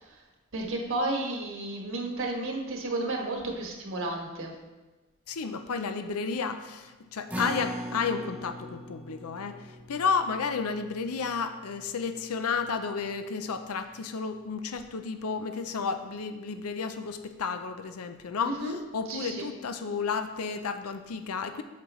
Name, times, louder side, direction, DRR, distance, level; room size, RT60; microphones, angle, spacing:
voice 1, 0.5-4.5 18.4-18.7 19.1-19.5, right 2 dB, 65° right, 0 dB, 1.5 m, -32 dB
voice 2, 5.3-21.6, left 5 dB, 80° left, 8 dB, 0.6 m, -32 dB
sound 1, 7.3-13.9, equal, 5° right, 0.7 m, -41 dB
8.2 x 7.7 x 3.1 m, 1.2 s
head